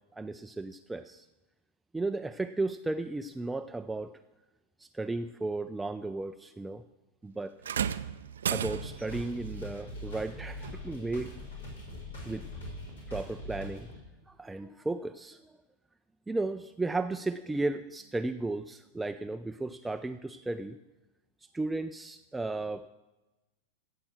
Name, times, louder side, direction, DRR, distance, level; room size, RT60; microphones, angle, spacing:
voice 1, 0.1-1.3 1.9-4.2 4.8-6.8 7.2-7.5 8.5-11.3 12.2-12.5 13.1-13.9 14.3-15.5 16.3-20.8 21.5-22.9, right 2 dB, 10° right, 8 dB, 0.4 m, -34 dB
sound 1, 7.6-9.2 10.6-10.8 11.7-11.8, right 8 dB, 65° right, 0.5 m, -33 dB
sound 2, 8.6-14.0, left 1 dB, 75° left, 4.4 m, -42 dB
15.5 x 7.9 x 6.2 m, 1.0 s
figure-of-eight pair, 90°, 0 cm